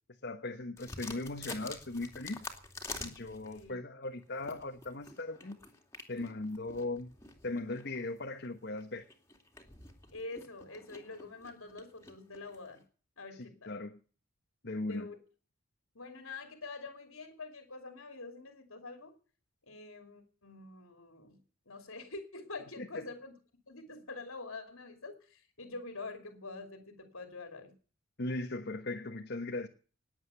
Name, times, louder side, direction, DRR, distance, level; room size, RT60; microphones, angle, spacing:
voice 1, 0.2-2.4 3.0-5.6 6.1-7.1 7.4-9.1 13.3-14.0 14.6-15.1 22.8-23.0 28.2-29.7, left 2 dB, 50° left, 4 dB, 1.3 m, -38 dB
sound 1, 0.8-3.7 4.2-12.8, left 3 dB, 15° left, 2.6 m, -48 dB
voice 2, 3.4-3.8 10.1-12.8 13.2-13.7 14.9-15.2 15.9-19.1 19.7-21.4 21.7-23.3 23.7-27.7, left 3 dB, 85° left, 6 dB, 2.8 m, -46 dB
19.5 x 8.2 x 6.9 m, 0.40 s
head